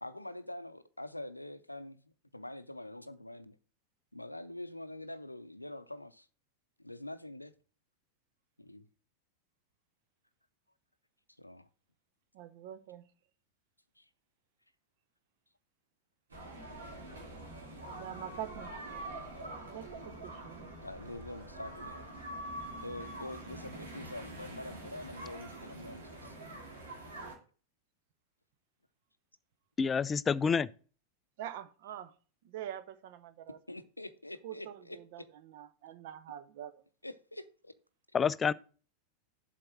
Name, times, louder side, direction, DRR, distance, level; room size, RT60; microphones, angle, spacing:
voice 1, 0.0-2.0 2.3-3.6 4.1-6.3 6.8-7.5 8.6-8.9 11.4-11.7 14.0-14.1 17.5-17.7 20.8-22.1 22.8-26.4 33.7-35.3 37.0-37.7, left 1 dB, 85° left, 0.5 m, -45 dB
voice 2, 12.3-13.1 18.0-18.7 19.7-20.7 31.4-32.1 32.4-33.6 34.4-36.8, right 11 dB, 50° right, 0.6 m, -45 dB
sound 1, 16.3-27.3, right 1 dB, 70° right, 2.3 m, -45 dB
voice 3, 29.8-30.7 38.1-38.5, left 6 dB, 20° left, 0.3 m, -28 dB
7.6 x 4.2 x 6.2 m
figure-of-eight pair, 90°, 0 cm